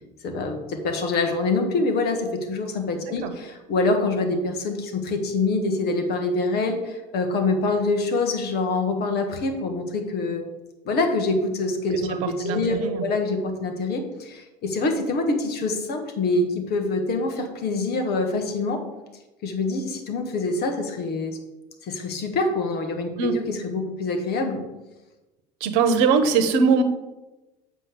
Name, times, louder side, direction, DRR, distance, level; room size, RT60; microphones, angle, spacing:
voice 1, 0.2-10.4 10.9-18.8 19.4-21.4 21.8-24.6, left 3 dB, 50° left, 5 dB, 1.8 m, -25 dB
voice 2, 12.2-13.0 23.2-23.3 25.6-26.8, right 5 dB, 65° right, 9 dB, 1.1 m, -21 dB
7.7 x 4.5 x 6.9 m, 1.0 s
hypercardioid pair, 70°, 20 cm